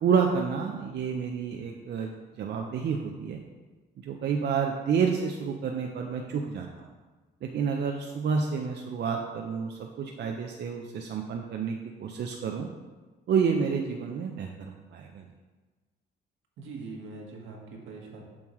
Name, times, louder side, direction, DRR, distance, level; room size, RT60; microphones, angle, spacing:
voice 1, 0.0-3.4 4.0-6.9 7.4-12.7 13.3-15.2, right 6 dB, 60° right, 2 dB, 0.6 m, -29 dB
voice 2, 16.6-18.2, right 3 dB, 80° right, 0 dB, 1.5 m, -42 dB
7.2 x 6.3 x 3.1 m, 1.3 s
cardioid pair, 90°, 20 cm